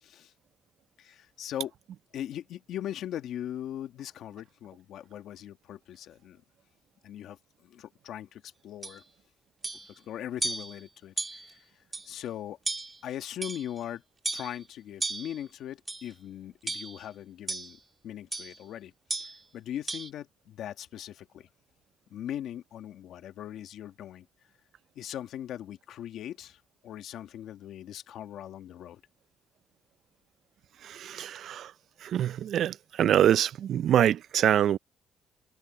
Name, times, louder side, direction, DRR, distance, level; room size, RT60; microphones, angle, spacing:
voice 1, 0.0-0.3 1.0-1.7 2.1-6.4 7.0-9.0 9.9-11.6 12.0-12.6 13.0-14.0 14.3-17.8 18.0-18.9 19.2-21.5 22.1-24.3 25.0-29.0, left 11 dB, 80° left, 1.8 m, -40 dB
sound 1, 8.8-9.0 9.6-9.9 10.4-10.8 11.2-11.5 11.9-12.1 12.6-13.0 13.4-13.8 14.2-14.6 15.0-15.4 15.9-16.1 16.7-17.1 17.5-17.7 18.3-18.6 19.1-19.4 19.9-20.1, right 3 dB, 20° right, 2.9 m, -34 dB
voice 2, 30.8-31.7 32.0-34.8, right 10 dB, 70° right, 0.4 m, -25 dB
cardioid pair, 90°, 0 cm